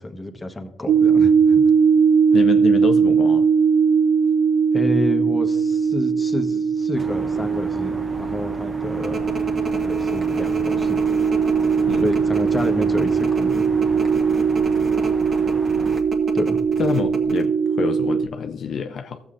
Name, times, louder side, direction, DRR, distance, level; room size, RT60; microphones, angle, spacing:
voice 1, 0.0-1.6 4.7-9.2 9.7-11.1 12.0-13.7 16.3-16.6, left 2 dB, 20° left, 5 dB, 1.1 m, -29 dB
sound 1, 0.9-18.3, right 6 dB, 65° right, 0.4 m, -20 dB
voice 2, 2.3-3.5 11.9-12.1 16.8-19.2, left 6 dB, 60° left, 6 dB, 0.4 m, -26 dB
sound 2, 6.9-16.0, right 2 dB, 30° right, 0.8 m, -35 dB
sound 3, 9.0-17.5, right 1 dB, 45° right, 1.4 m, -33 dB
17.0 x 7.1 x 2.5 m, 0.99 s
cardioid pair, 90°, 0 cm